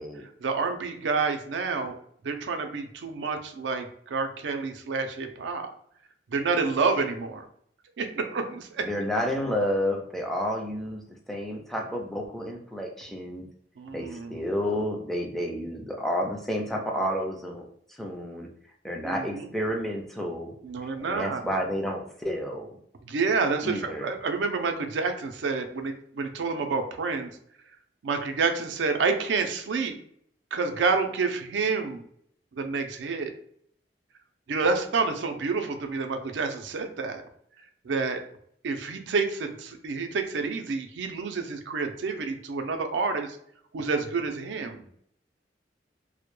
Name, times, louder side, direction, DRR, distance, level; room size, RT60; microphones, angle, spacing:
voice 1, 0.4-2.0 2.2-5.7 6.3-7.4 8.0-8.9 13.8-14.5 19.0-19.5 20.6-21.4 23.1-27.3 28.0-29.9 30.5-32.0 32.5-33.3 34.5-37.2 37.8-38.2 38.6-43.4 43.7-44.9, right 4 dB, 85° right, 6 dB, 0.4 m, -28 dB
voice 2, 8.8-11.0 11.3-13.4 13.9-17.6 18.0-18.5 18.8-20.5 20.8-22.7 23.6-24.1, equal, ahead, 1 dB, 0.3 m, -30 dB
2.1 x 2.1 x 3.0 m, 0.66 s
head